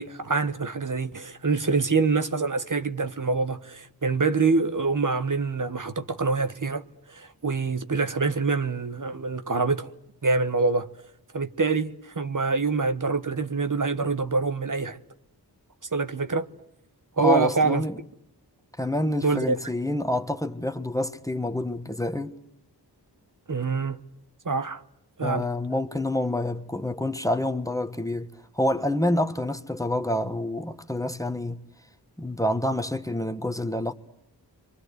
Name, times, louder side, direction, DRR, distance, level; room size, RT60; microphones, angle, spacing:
voice 1, 0.0-6.8 7.1-9.9 10.2-10.9 11.3-15.0 15.9-16.5 17.2-17.8 19.2-19.5 23.5-24.0 24.4-24.8 25.2-25.5, right 4 dB, 50° right, 1.3 m, -25 dB
voice 2, 17.2-18.0 18.8-22.4 25.2-31.7 32.2-33.9, left 1 dB, 10° left, 1.4 m, -27 dB
29.0 x 24.5 x 8.0 m
wide cardioid pair, 50°, 40 cm